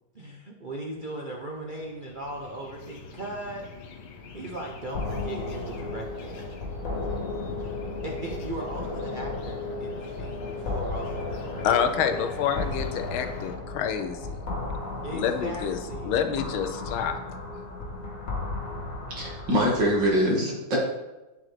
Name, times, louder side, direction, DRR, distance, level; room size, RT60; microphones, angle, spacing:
voice 1, 0.1-3.6 4.3-6.5 8.0-11.7 12.1-12.2 15.0-16.3, right 1 dB, 80° right, -1 dB, 0.4 m, -38 dB
sound 1, 0.9-13.6, left 5 dB, 60° left, 1.3 m, -44 dB
sound 2, 4.9-20.2, left 3 dB, 45° left, 1.6 m, -34 dB
voice 2, 11.6-14.4 15.1-15.8 16.0-17.2, left 8 dB, 80° left, 7 dB, 1.6 m, -27 dB
voice 3, 19.1-20.8, equal, 60° right, -3 dB, 2.6 m, -24 dB
8.8 x 7.7 x 3.3 m, 1.1 s
omnidirectional pair, 2.3 m